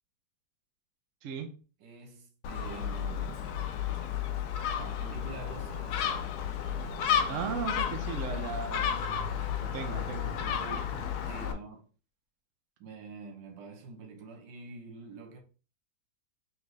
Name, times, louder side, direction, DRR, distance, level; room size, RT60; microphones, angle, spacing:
voice 1, 1.2-1.6 7.3-9.3 9.6-11.0, right 6 dB, 60° right, 0.8 m, -38 dB
voice 2, 1.8-3.5 4.7-6.3 11.3-11.9 12.8-15.4, right 4 dB, 90° right, 1.5 m, -46 dB
Gull seagull, 2.4-11.5, left 8 dB, 70° left, 1.0 m, -32 dB
4.0 x 3.4 x 3.1 m
omnidirectional pair, 1.9 m